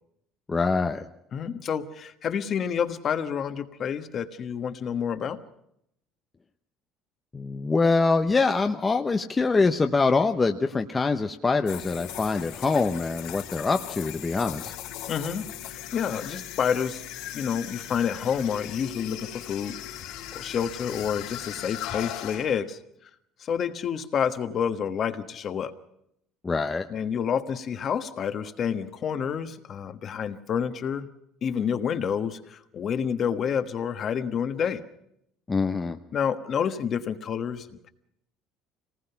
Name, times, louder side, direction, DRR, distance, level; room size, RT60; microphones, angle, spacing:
voice 1, 0.5-1.0 7.3-14.7 26.4-26.9 35.5-36.0, left 4 dB, 15° left, 5 dB, 0.8 m, -24 dB
voice 2, 1.3-5.4 15.1-17.0 17.3-19.7 20.0-22.8 23.4-25.7 26.9-31.1 31.4-34.8 36.1-37.9, left 7 dB, 35° left, 9 dB, 1.4 m, -29 dB
sound 1, 11.7-22.5, left 12 dB, 80° left, 3.4 m, -38 dB
26.0 x 19.0 x 5.8 m, 0.76 s
cardioid pair, 150°, 0 cm